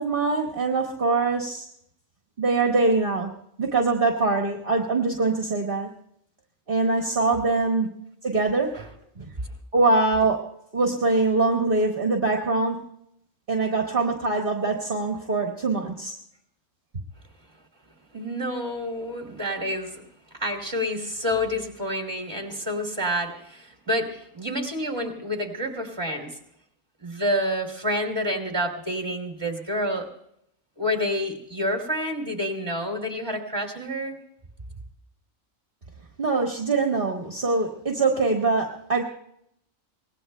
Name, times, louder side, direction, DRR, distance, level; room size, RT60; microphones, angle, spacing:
voice 1, 0.0-1.7 2.4-3.3 3.6-5.9 6.7-7.9 8.2-8.7 9.2-9.3 9.7-10.4 10.7-12.8 13.5-16.1 36.2-39.0, right 3 dB, 45° right, 0 dB, 1.6 m, -23 dB
voice 2, 18.1-20.0 20.3-26.4 27.0-30.1 30.8-34.2, equal, 20° right, 2 dB, 2.7 m, -28 dB
24.5 x 19.5 x 2.2 m, 0.74 s
omnidirectional pair, 1.4 m